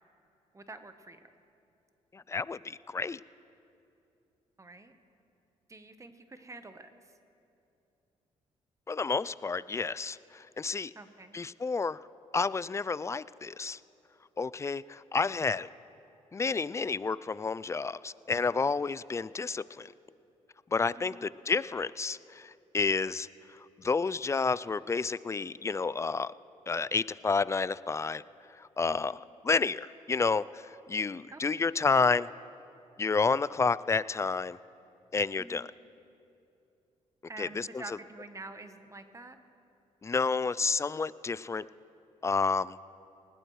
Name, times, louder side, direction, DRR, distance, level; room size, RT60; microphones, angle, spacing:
voice 1, 0.5-1.3 4.6-4.9 5.7-6.9 10.9-11.4 18.3-18.6 20.9-21.3 28.9-29.2 31.3-31.7 35.4-35.7 37.3-39.4, right 3 dB, 25° right, 9 dB, 1.0 m, -47 dB
voice 2, 2.1-3.2 8.9-10.9 11.3-12.0 12.3-13.8 14.4-15.7 16.3-19.9 20.7-23.3 23.8-26.3 26.7-28.2 28.6-32.3 33.0-34.6 35.1-35.7 37.4-37.8 40.0-41.7 42.2-42.8, left 4 dB, 20° left, 19 dB, 0.3 m, -30 dB
20.0 x 16.5 x 3.2 m, 2.7 s
supercardioid pair, 65°, 13 cm